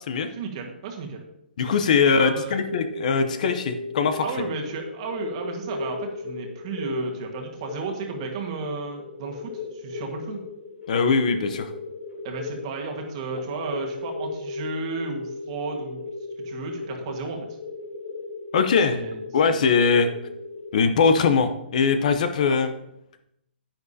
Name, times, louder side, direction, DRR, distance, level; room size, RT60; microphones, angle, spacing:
voice 1, 0.3-1.2 2.0-2.6 4.2-10.4 12.2-16.0 16.4-17.4 18.9-19.2 19.5-19.7 22.5-22.6, right 5 dB, 30° right, 2 dB, 1.5 m, -33 dB
voice 2, 1.6-4.2 10.9-11.7 18.5-19.1 19.3-20.1 20.7-22.7, left 5 dB, 45° left, 9 dB, 0.7 m, -21 dB
sound 1, 2.5-20.8, left 3 dB, 65° left, 3.0 m, -36 dB
10.5 x 10.0 x 2.8 m, 0.79 s
hypercardioid pair, 170°, 6 cm